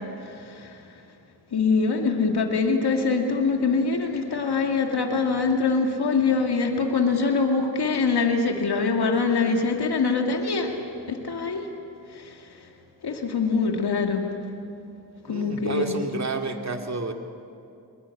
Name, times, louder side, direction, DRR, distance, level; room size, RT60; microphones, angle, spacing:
voice 1, 0.2-0.8 1.5-10.8 11.1-11.7 12.1-12.7 13.0-14.3 15.2-15.9, left 4 dB, 65° left, 2 dB, 2.4 m, -24 dB
voice 2, 15.3-17.1, right 3 dB, 40° right, 4 dB, 2.5 m, -30 dB
22.0 x 21.5 x 8.6 m, 2.6 s
cardioid pair, 50°, 41 cm